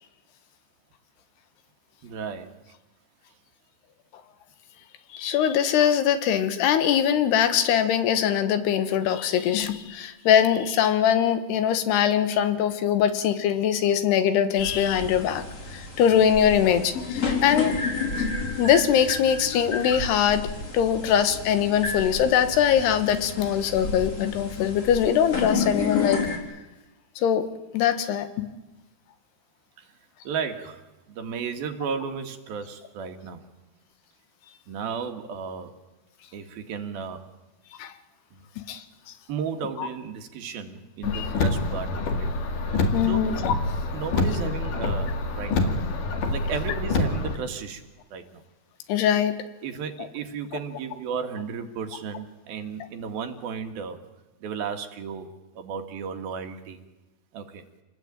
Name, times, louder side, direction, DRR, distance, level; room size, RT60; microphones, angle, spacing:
voice 1, 2.0-2.5 29.8-29.9 30.3-30.8 31.1-33.4 34.7-35.7 36.3-37.3 38.3-38.5 39.3-42.3 42.6-43.3 43.9-45.9 46.3-47.8 48.1-48.4 49.6-54.0 54.4-55.3 55.6-56.8 57.3-57.6, right 6 dB, 70° right, 7 dB, 3.4 m, -34 dB
voice 2, 5.1-15.4 15.7-17.7 18.2-18.3 18.6-20.5 20.7-26.3 27.2-27.5 27.7-28.5 37.8-37.9 38.7-38.8 39.8-39.9 41.0-41.3 42.9-43.5 48.9-49.3, left 9 dB, 80° left, 10 dB, 3.4 m, -22 dB
sound 1, 14.6-26.4, left 4 dB, 40° left, 4.6 m, -31 dB
Car, 41.0-47.4, left 3 dB, 55° left, 3.5 m, -26 dB
27.5 x 19.5 x 9.0 m, 1.1 s
omnidirectional pair, 4.7 m